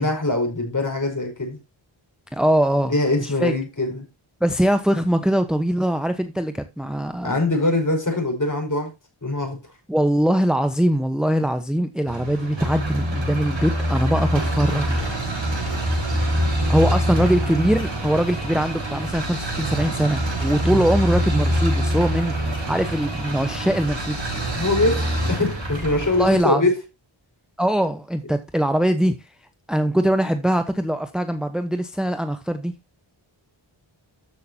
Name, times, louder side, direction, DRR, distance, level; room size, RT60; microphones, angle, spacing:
voice 1, 0.0-1.6 2.9-4.0 7.2-8.9 9.2-9.6 17.1-17.3 20.7-20.9 24.5-26.7, left 2 dB, 40° left, 5.2 m, -23 dB
voice 2, 2.3-3.5 4.4-7.3 9.9-15.0 16.7-22.3 22.7-24.3 26.0-26.6 27.6-29.1 29.7-32.7, right 1 dB, ahead, 1.0 m, -22 dB
sound 1, 12.1-26.4, equal, 60° right, 6.1 m, -25 dB
13.5 x 6.6 x 2.8 m
cardioid pair, 45°, 49 cm